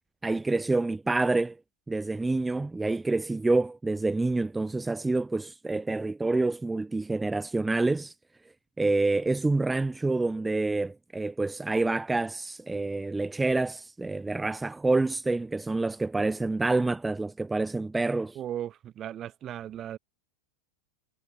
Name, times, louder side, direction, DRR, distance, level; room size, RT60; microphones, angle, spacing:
voice 1, 0.2-1.6 1.9-8.1 8.8-18.4, right 3 dB, 10° right, 1.4 m, -27 dB
voice 2, 18.3-20.0, right 11 dB, 30° right, 2.3 m, -36 dB
figure-of-eight pair, 90°, 0 cm